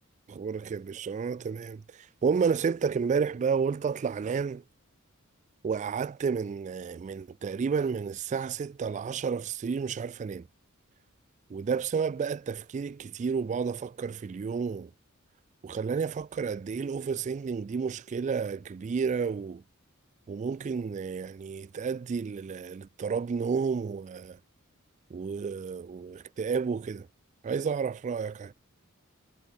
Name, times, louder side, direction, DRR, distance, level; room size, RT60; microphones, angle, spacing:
voice 1, 0.3-4.6 5.6-10.5 11.5-14.9 15.6-19.6 20.3-24.4 25.1-27.1 27.4-28.6, right 6 dB, 35° right, 0.3 m, -31 dB
head